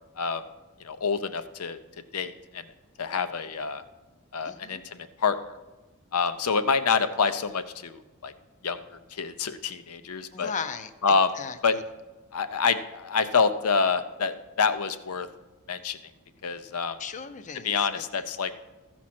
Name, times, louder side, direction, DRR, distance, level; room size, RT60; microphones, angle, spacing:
voice 1, 0.8-1.8 2.1-2.6 3.0-3.8 4.3-5.4 6.1-8.3 8.6-8.8 9.1-10.5 11.0-11.3 11.6-11.7 12.3-15.3 15.7-16.0 16.4-17.0 17.6-18.6, left 5 dB, 85° left, 11 dB, 0.7 m, -27 dB
voice 2, 4.4-4.8 10.3-10.9 11.3-11.6 17.0-18.2, left 5 dB, 35° left, 10 dB, 0.5 m, -37 dB
15.0 x 6.1 x 4.3 m, 1.1 s
head